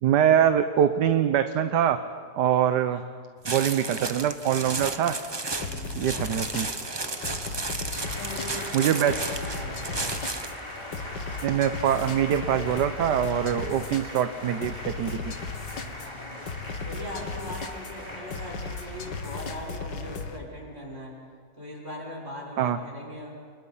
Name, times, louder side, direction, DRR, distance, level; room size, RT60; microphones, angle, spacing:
voice 1, 0.0-2.0 2.4-3.0 3.5-5.1 5.9-6.7 8.7-9.1 11.4-15.2 22.6-22.8, right 9 dB, 70° right, 9 dB, 1.5 m, -23 dB
sound 1, 3.4-10.6, right 3 dB, 20° right, 0.7 m, -33 dB
sound 2, 5.6-20.4, left 4 dB, 75° left, 2.2 m, -37 dB
voice 2, 5.6-6.0 8.0-10.2 15.8-16.4 16.8-21.2 21.6-23.4, equal, 40° right, -2 dB, 6.9 m, -40 dB
sound 3, 7.9-20.0, equal, 15° left, 3.5 m, -41 dB
29.5 x 29.0 x 5.7 m, 2.1 s
omnidirectional pair, 1.9 m